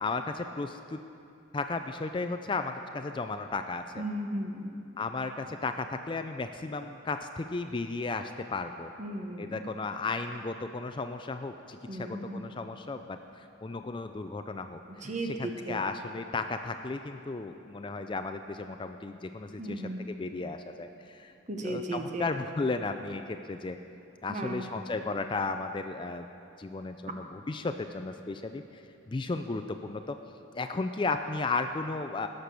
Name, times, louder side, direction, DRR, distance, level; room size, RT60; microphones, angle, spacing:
voice 1, 0.0-1.0 1.5-4.0 5.0-8.9 9.4-21.3 21.6-23.8 24.2-26.3 26.6-28.8 29.1-30.2 30.5-32.3, left 3 dB, 25° left, 8 dB, 0.4 m, -34 dB
voice 2, 4.0-4.7 9.0-9.7 11.9-12.4 15.0-15.8 19.6-20.0 21.5-22.3 24.3-24.7, right 1 dB, 35° right, 3 dB, 1.1 m, -35 dB
17.5 x 6.6 x 6.9 m, 2.7 s
head